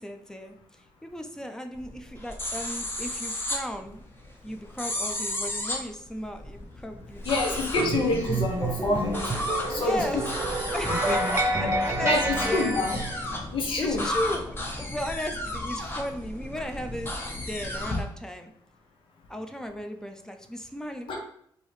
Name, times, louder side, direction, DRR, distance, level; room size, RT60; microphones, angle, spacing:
voice 1, 0.0-4.0 4.4-7.2 7.5-7.7 9.6-10.2 10.7-12.7 13.8-18.5 19.3-21.2, equal, 5° left, 6 dB, 0.5 m, -36 dB
sound 1, 1.7-18.0, left 1 dB, 25° left, 0.9 m, -34 dB
voice 2, 7.2-9.3 9.7-10.2 10.9-11.3 12.0-13.0 13.5-14.0 21.1-21.2, left 3 dB, 70° left, 1 dB, 0.8 m, -27 dB
sound 2, 7.8-13.3, right 2 dB, 30° right, 0.7 m, -29 dB
4.8 x 2.7 x 3.2 m, 0.67 s
cardioid pair, 120°, 9 cm